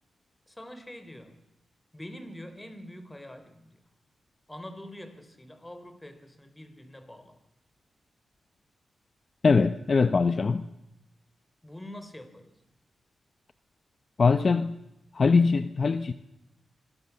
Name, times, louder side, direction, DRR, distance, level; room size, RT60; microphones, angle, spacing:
voice 1, 0.5-1.4 1.9-3.7 4.5-7.4 11.6-12.5, left 1 dB, 10° left, 9 dB, 4.0 m, -45 dB
voice 2, 9.4-10.7 14.2-14.8 15.1-16.1, left 4 dB, 45° left, 10 dB, 1.0 m, -22 dB
26.0 x 22.0 x 7.2 m, 0.88 s
cardioid pair, 85°, 0 cm